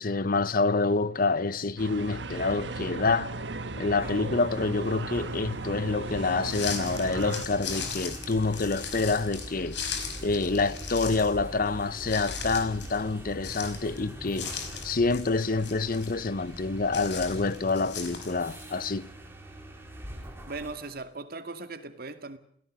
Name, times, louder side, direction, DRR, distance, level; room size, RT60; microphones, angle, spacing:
voice 1, 0.0-3.3 3.8-9.8 10.2-19.1, left 3 dB, 50° left, 0.9 m, -27 dB
sound 1, 1.8-7.5, right 2 dB, 70° right, 1.4 m, -36 dB
sound 2, 3.8-21.0, right 1 dB, 15° right, 4.5 m, -43 dB
sound 3, 6.4-18.6, left 6 dB, 70° left, 4.9 m, -39 dB
voice 2, 20.4-22.4, right 3 dB, 55° right, 2.0 m, -38 dB
28.5 x 17.5 x 6.4 m
head